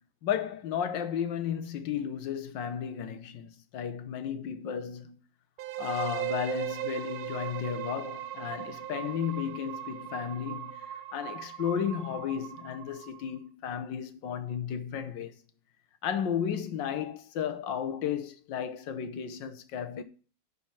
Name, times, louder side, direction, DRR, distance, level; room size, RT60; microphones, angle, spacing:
voice 1, 0.2-5.2 5.8-10.8 11.1-15.3 16.0-20.0, left 8 dB, 70° left, 1.6 m, -33 dB
sound 1, 5.6-13.4, right 12 dB, 85° right, 1.5 m, -38 dB
11.0 x 4.4 x 7.1 m
omnidirectional pair, 2.2 m